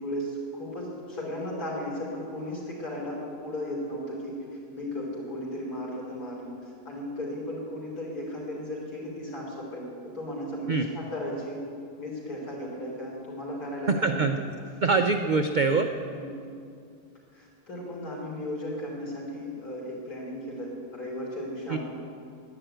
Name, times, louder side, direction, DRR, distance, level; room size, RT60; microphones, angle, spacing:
voice 1, 0.0-4.4 4.7-6.5 6.9-9.9 10.1-11.6 12.0-14.2 16.1-16.4 17.3-21.8, left 1 dB, 75° left, -3 dB, 4.2 m, -35 dB
voice 2, 13.9-14.4 14.8-15.9 21.7-21.8, right 4 dB, 65° right, 6 dB, 0.4 m, -24 dB
11.0 x 10.5 x 9.0 m, 2.5 s
omnidirectional pair, 1.6 m